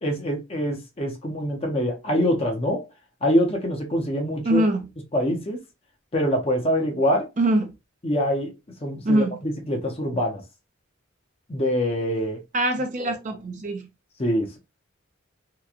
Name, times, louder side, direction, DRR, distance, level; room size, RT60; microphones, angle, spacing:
voice 1, 0.0-2.9 3.2-4.6 5.1-5.6 6.1-7.3 8.0-8.5 8.8-10.4 11.5-12.4 14.2-14.6, equal, 30° left, 0.7 m, -24 dB
voice 2, 4.4-4.9 7.4-7.7 9.0-9.3 12.5-13.8, right 1 dB, 40° right, 0.5 m, -23 dB
2.9 x 2.2 x 2.4 m
head